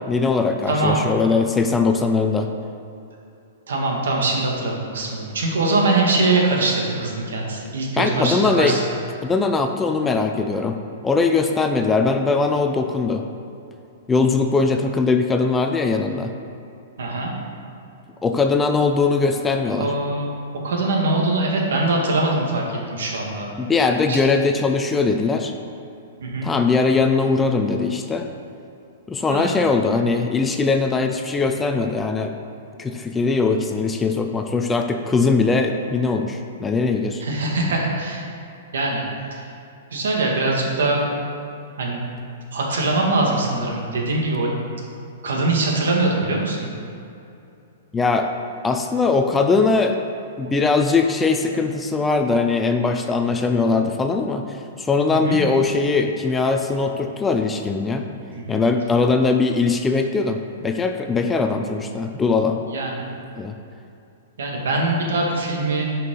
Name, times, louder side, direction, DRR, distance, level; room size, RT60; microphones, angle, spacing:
voice 1, 0.1-2.5 8.0-8.8 9.2-10.8 11.0-13.2 14.1-16.3 18.2-19.9 23.6-25.5 26.4-28.3 29.1-32.3 32.8-37.2 47.9-48.3 48.6-50.0 50.4-54.4 54.8-58.0 58.5-62.6 63.3-63.5, left 4 dB, 10° left, 5 dB, 0.3 m, -20 dB
voice 2, 0.7-1.1 3.7-8.8 17.0-17.3 19.8-20.3 20.6-23.5 24.1-24.2 26.2-26.5 29.3-29.5 37.2-38.3 38.7-39.0 39.3-39.5 39.9-41.0 41.8-42.0 42.5-44.5 45.2-46.7 55.2-55.4 58.3-58.6 62.7-63.0 64.4-65.8, right 2 dB, 85° right, -1 dB, 2.1 m, -22 dB
11.5 x 5.7 x 3.9 m, 2.7 s
hypercardioid pair, 170°, 0 cm